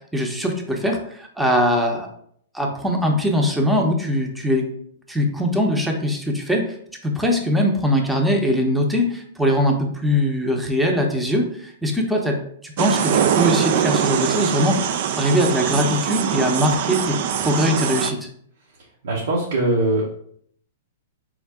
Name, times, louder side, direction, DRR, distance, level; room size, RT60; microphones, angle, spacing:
voice 1, 0.1-2.1 2.5-4.7 5.1-6.8 7.0-18.2, equal, 5° right, 1 dB, 0.7 m, -21 dB
sound 1, 12.8-18.1, right 9 dB, 60° right, 0.3 m, -22 dB
voice 2, 19.0-20.0, right 2 dB, 80° right, -4 dB, 1.1 m, -21 dB
3.8 x 3.6 x 3.5 m, 0.65 s
hypercardioid pair, 125°, 0 cm